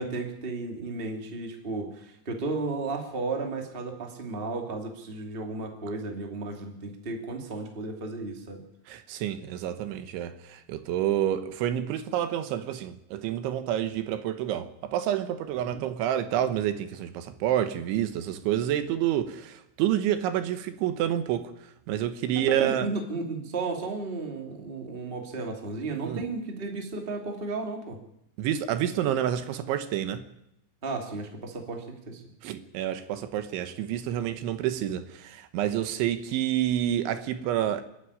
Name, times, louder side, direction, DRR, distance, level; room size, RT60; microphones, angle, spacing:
voice 1, 0.0-8.6 15.6-15.8 22.3-28.0 30.8-32.2, right 3 dB, 20° right, 1.5 m, -34 dB
voice 2, 8.9-21.5 21.9-22.9 26.0-26.2 28.4-30.2 32.4-37.8, right 11 dB, 75° right, 3.3 m, -28 dB
29.5 x 9.8 x 9.7 m
omnidirectional pair, 5.7 m